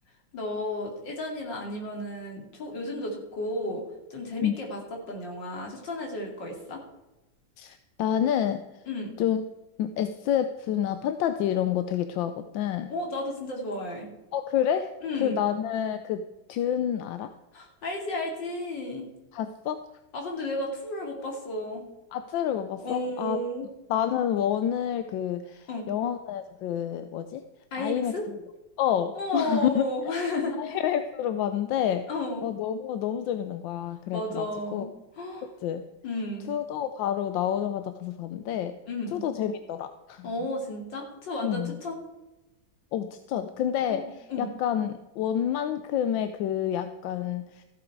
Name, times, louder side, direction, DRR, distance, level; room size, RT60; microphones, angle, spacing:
voice 1, 0.3-3.8 4.1-4.8 5.1-6.8 8.9-9.1 12.9-14.1 15.0-15.4 17.5-19.1 20.1-21.8 22.8-23.7 25.7-25.9 27.7-28.3 29.1-30.8 32.1-32.4 34.1-35.5 36.0-36.5 38.9-39.2 40.2-42.0 43.9-44.0 44.3-44.5, left 1 dB, 70° left, 1 dB, 3.1 m, -33 dB
voice 2, 7.6-8.6 9.2-9.4 9.8-12.9 14.3-14.9 15.2-16.2 16.5-17.3 19.3-19.8 22.1-23.4 23.9-27.4 27.8-28.4 28.8-30.2 30.6-32.1 32.4-34.5 34.7-34.9 35.6-35.8 36.5-38.7 39.1-40.3 41.4-41.8 42.9-44.1 44.4-47.6, left 10 dB, 85° left, 9 dB, 1.4 m, -28 dB
14.5 x 7.9 x 4.7 m, 1.0 s
omnidirectional pair, 2.1 m